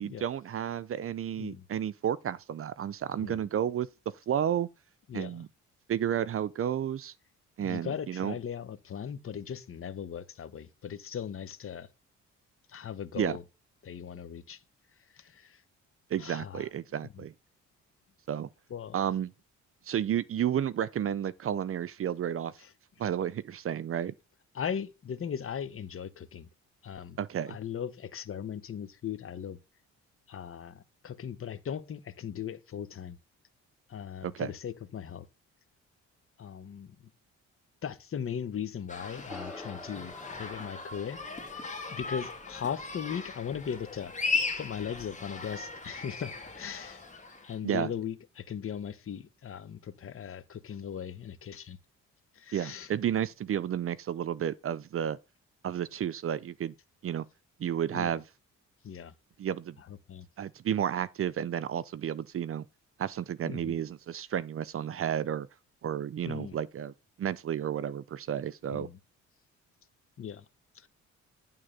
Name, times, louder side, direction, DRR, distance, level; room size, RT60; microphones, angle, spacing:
voice 1, 0.0-3.9 4.3-4.7 5.1-5.5 5.9-7.1 7.6-8.4 13.2-13.4 16.1-17.3 18.3-18.5 18.9-19.3 19.9-22.5 23.0-24.1 27.2-27.6 34.2-34.5 47.6-47.9 52.5-55.2 55.6-56.7 57.0-57.2 57.6-58.2 59.4-59.8 60.4-62.7 63.0-65.5 65.8-68.9, right 9 dB, 45° right, 0.6 m, -32 dB
voice 2, 7.6-11.9 12.7-13.4 13.8-14.6 15.1-15.6 16.2-16.7 17.1-17.2 18.7-19.0 22.6-22.7 24.5-26.5 26.8-27.2 27.5-29.6 30.3-33.2 33.9-35.3 36.4-36.9 37.8-41.4 41.9-44.1 44.6-47.0 47.4-51.8 52.3-52.9 57.9-58.1 58.8-59.1 59.9-60.3 63.4-63.8 66.2-66.6 68.7-69.0 70.2-70.4 70.7-70.9, left 8 dB, 45° left, 1.1 m, -38 dB
sound 1, 38.9-47.6, left 4 dB, 25° left, 2.2 m, -37 dB
sound 2, 39.3-44.0, left 2 dB, ahead, 5.2 m, -49 dB
11.0 x 3.7 x 6.6 m
cardioid pair, 90°, 30 cm